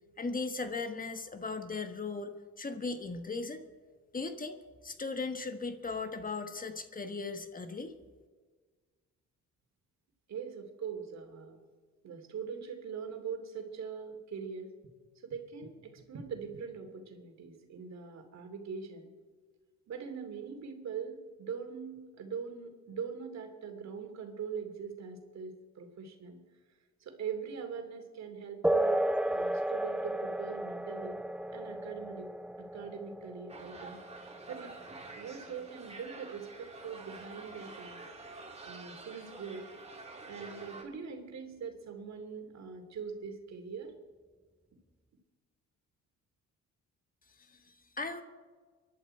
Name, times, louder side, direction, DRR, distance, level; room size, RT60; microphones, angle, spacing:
voice 1, 0.2-3.6 4.1-7.9 47.5-48.2, left 3 dB, 30° left, 8 dB, 1.3 m, -38 dB
voice 2, 10.3-11.6 12.0-14.7 15.2-19.1 19.9-26.4 27.0-29.0 29.3-31.2 31.5-32.3 32.6-34.0 34.5-34.7 35.2-38.1 38.6-39.7 40.3-43.9, right 6 dB, 60° right, 5 dB, 2.8 m, -42 dB
sound 1, 28.6-36.6, right 1 dB, 5° right, 0.4 m, -34 dB
sound 2, 33.5-40.8, right 3 dB, 20° right, 2.7 m, -48 dB
24.0 x 11.5 x 4.5 m, 1.4 s
cardioid pair, 90°, 30 cm